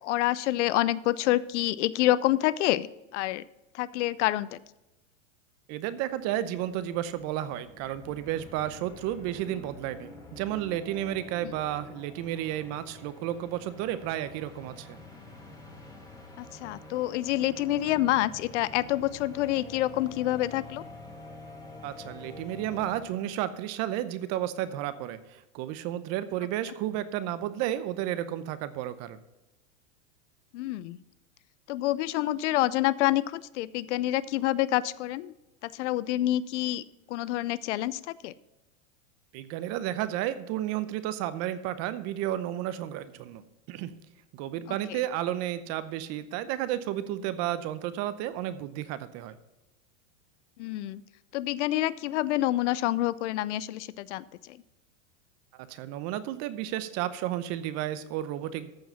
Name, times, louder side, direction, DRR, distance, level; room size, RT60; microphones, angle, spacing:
voice 1, 0.0-3.4 3.7-4.6 16.4-20.8 30.5-31.0 31.7-35.3 35.6-38.3 44.7-45.0 50.6-51.0 51.3-54.6, left 15 dB, 65° left, 19 dB, 0.5 m, -27 dB
voice 2, 5.7-15.0 21.8-29.2 39.3-43.9 44.3-49.4 55.5-58.7, right 12 dB, 40° right, 13 dB, 0.7 m, -32 dB
sound 1, 5.8-5.9 6.1-23.6, left 2 dB, 10° left, 1.8 m, -47 dB
14.0 x 4.8 x 5.5 m, 0.98 s
supercardioid pair, 130°, 38 cm